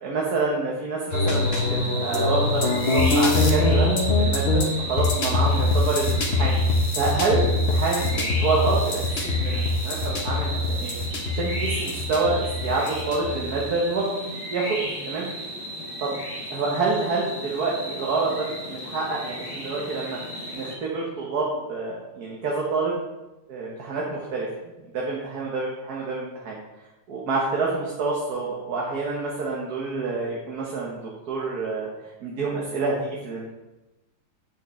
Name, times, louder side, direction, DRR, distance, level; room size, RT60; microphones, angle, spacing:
voice 1, 0.0-3.9 4.2-6.6 6.9-9.0 9.3-10.9 11.3-15.3 16.0-16.2 16.5-20.2 20.5-22.9 23.5-26.6 27.1-31.0 31.3-31.9 32.2-33.5, right 3 dB, 70° right, -3 dB, 1.6 m, -27 dB
sound 1, 1.1-13.6, left 2 dB, 45° left, 1.1 m, -23 dB
sound 2, 1.1-20.7, equal, 15° left, 2.0 m, -34 dB
8.4 x 6.5 x 3.2 m, 1.0 s
omnidirectional pair, 1.7 m